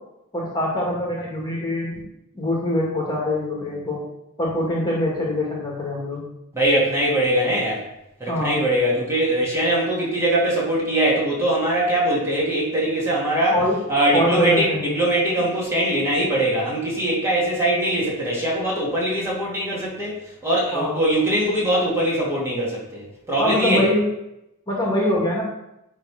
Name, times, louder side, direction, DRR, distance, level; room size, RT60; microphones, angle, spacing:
voice 1, 0.3-2.0 2.3-4.0 4.4-6.2 8.3-8.6 13.5-13.8 14.1-14.9 20.7-21.0 23.4-24.0 24.7-25.4, left 1 dB, 20° left, -4 dB, 2.1 m, -23 dB
voice 2, 6.5-7.8 8.2-13.6 13.9-20.2 20.4-23.8, right 1 dB, 10° right, -6 dB, 2.3 m, -22 dB
10.5 x 3.6 x 4.9 m, 0.84 s
head